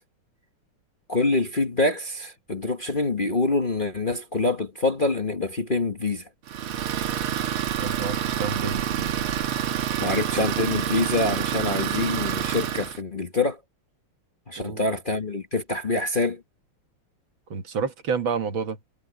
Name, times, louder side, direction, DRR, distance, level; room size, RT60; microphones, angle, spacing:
voice 1, 1.1-6.2 10.0-13.6 14.5-16.4, left 3 dB, 25° left, 1.3 m, -25 dB
Idling, 6.5-13.0, right 10 dB, 80° right, 2.0 m, -27 dB
voice 2, 7.8-9.2 14.6-14.8 17.5-18.8, right 5 dB, 65° right, 2.3 m, -29 dB
omnidirectional pair, 2.4 m